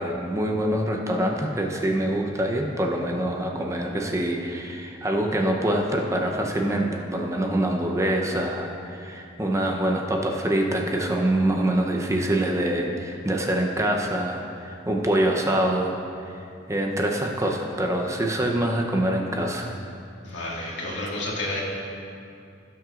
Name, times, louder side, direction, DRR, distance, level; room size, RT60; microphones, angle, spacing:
voice 1, 0.0-15.9 16.2-16.3 16.7-19.7, right 1 dB, 15° right, 1 dB, 0.7 m, -25 dB
voice 2, 20.2-21.6, left 2 dB, 85° left, -5 dB, 1.9 m, -30 dB
17.0 x 6.0 x 2.5 m, 2.6 s
head